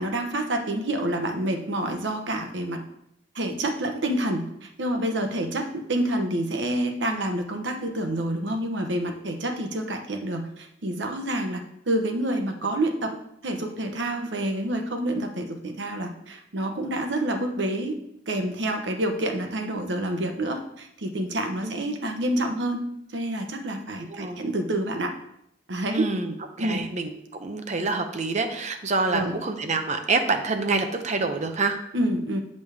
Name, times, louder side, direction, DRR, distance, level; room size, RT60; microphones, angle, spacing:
voice 1, 0.0-2.8 3.3-13.2 13.4-18.0 18.3-22.8 23.1-25.1 25.7-26.1 26.6-26.8 29.1-29.3 31.9-32.4, right 1 dB, 75° right, 4 dB, 0.9 m, -28 dB
voice 2, 24.0-24.4 25.9-31.8, right 3 dB, 40° right, 6 dB, 0.7 m, -27 dB
8.0 x 5.3 x 3.5 m, 0.76 s
head